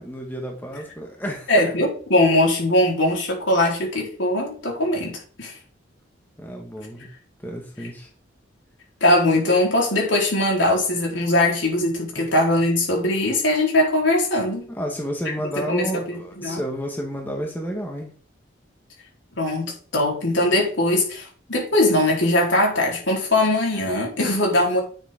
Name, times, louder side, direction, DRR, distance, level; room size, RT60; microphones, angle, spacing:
voice 1, 0.0-1.5 6.4-7.1 7.4-8.1 12.1-12.2 14.7-18.1, equal, 10° left, 0 dB, 1.7 m, -31 dB
voice 2, 1.5-5.5 9.0-14.7 15.7-16.6 19.4-24.8, left 1 dB, 80° left, -1 dB, 4.0 m, -21 dB
10.0 x 7.3 x 3.8 m, 0.41 s
head